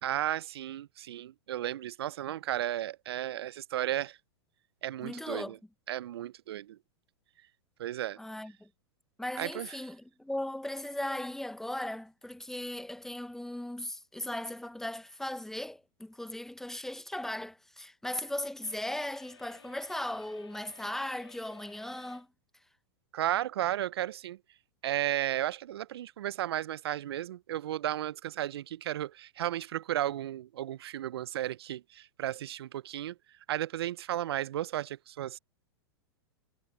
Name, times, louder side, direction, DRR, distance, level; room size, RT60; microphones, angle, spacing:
voice 1, 0.0-4.2 4.8-5.6 5.9-6.8 7.8-8.2 9.4-9.8 23.1-24.4 24.8-33.2 33.5-35.4, right 12 dB, 65° right, 0.7 m, -34 dB
voice 2, 5.0-5.5 8.2-8.7 9.2-22.3, left 1 dB, 5° left, 1.0 m, -38 dB
sound 1, 18.6-22.3, left 5 dB, 90° left, 4.0 m, -56 dB
hypercardioid pair, 100°, 14 cm